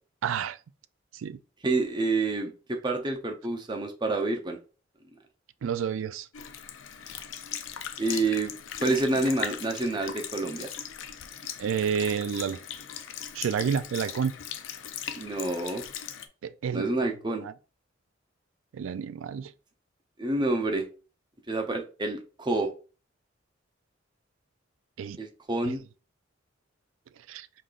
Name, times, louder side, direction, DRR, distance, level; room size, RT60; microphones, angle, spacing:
voice 1, 0.2-0.6 1.1-1.4 5.6-6.3 11.6-12.6 13.3-14.3 16.4-16.9 17.4-17.5 18.7-19.5 25.0-25.2 25.6-25.7 27.3-27.5, right 7 dB, 90° right, 0.3 m, -29 dB
voice 2, 1.6-4.6 8.0-8.5 8.8-10.7 15.1-15.9 16.7-17.4 20.2-20.9 21.5-22.7 25.2-25.8, right 2 dB, 25° right, 0.6 m, -28 dB
Sink (filling or washing) / Liquid, 6.3-16.3, left 9 dB, 80° left, 0.5 m, -39 dB
5.0 x 3.8 x 2.4 m
head